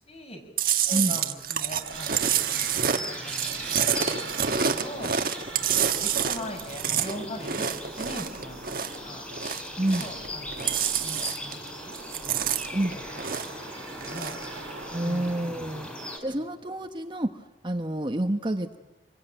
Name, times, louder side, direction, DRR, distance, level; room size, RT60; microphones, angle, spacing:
voice 1, 0.1-0.4 0.9-2.8 3.2-5.7 6.0-8.6 9.0-9.3 10.0-12.0 12.2-12.6 13.3-14.4 15.0-15.9 16.3-16.5, left 1 dB, 35° left, 4 dB, 6.6 m, -41 dB
Chewing mastication, 0.6-9.0 9.3-10.3 10.5-11.7 11.9-13.6 14.0-14.4, right 8 dB, 50° right, 1.5 m, -28 dB
sound 1, 1.7-15.9, right 5 dB, 80° right, 1.5 m, -43 dB
sound 2, 1.9-16.2, left 1 dB, 5° left, 5.0 m, -40 dB
voice 2, 9.8-10.1 12.7-13.0 14.9-15.9 16.2-17.3 17.6-18.8, right 1 dB, 25° right, 6 dB, 1.2 m, -28 dB
27.0 x 22.5 x 9.2 m, 1.1 s
head